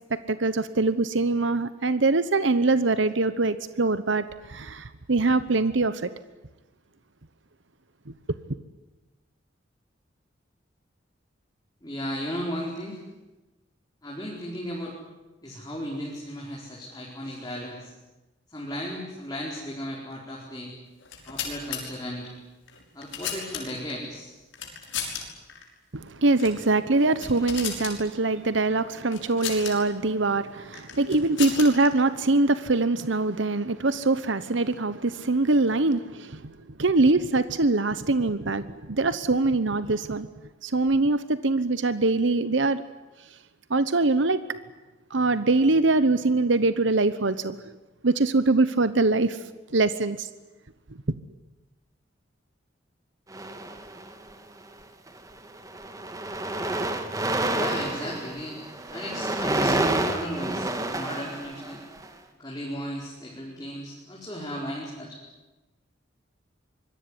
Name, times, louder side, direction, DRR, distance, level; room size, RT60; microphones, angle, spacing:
voice 1, 0.1-6.1 25.9-40.3 40.6-42.8 43.7-44.4 45.1-47.6 48.0-49.4 49.7-50.3, right 3 dB, 75° right, 13 dB, 1.0 m, -23 dB
voice 2, 11.8-13.0 14.0-14.9 15.4-17.9 18.5-20.7 21.3-22.3 22.9-24.3 57.5-58.6 58.9-61.8 62.4-65.2, equal, 20° left, -3 dB, 4.7 m, -35 dB
sound 1, 21.0-21.8 22.7-23.9 24.5-25.2 25.5-25.6 26.3-26.6 27.0-28.0 29.1-29.7 30.7-31.9, left 8 dB, 80° left, 6.1 m, -34 dB
sound 2, 53.3-54.3 55.1-55.3 55.6-62.0, right 1 dB, 20° right, 2.3 m, -29 dB
25.5 x 22.0 x 9.9 m, 1.1 s
head